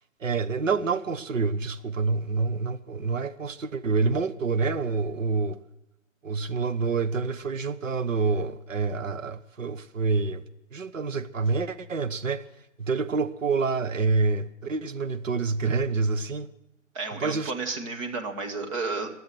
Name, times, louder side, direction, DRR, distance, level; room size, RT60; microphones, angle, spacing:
voice 1, 0.2-5.6 6.2-10.4 10.7-12.4 12.8-16.5 17.2-17.5, right 4 dB, 70° right, 1.2 m, -27 dB
voice 2, 16.9-19.1, right 3 dB, 25° right, 1.4 m, -32 dB
22.5 x 7.6 x 7.7 m
figure-of-eight pair, 145°, 40 cm